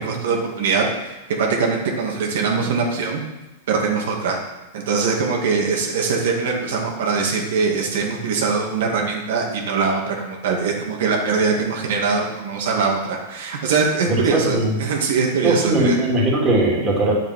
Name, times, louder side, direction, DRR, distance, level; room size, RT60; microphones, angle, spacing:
voice 1, 0.0-3.2 3.7-4.4 4.7-16.0, right 5 dB, 65° right, -1 dB, 2.6 m, -22 dB
voice 2, 14.1-14.8 15.4-17.1, right 2 dB, 15° right, -5 dB, 3.1 m, -19 dB
10.0 x 7.3 x 7.7 m, 1.0 s
supercardioid pair, 165°, 0 cm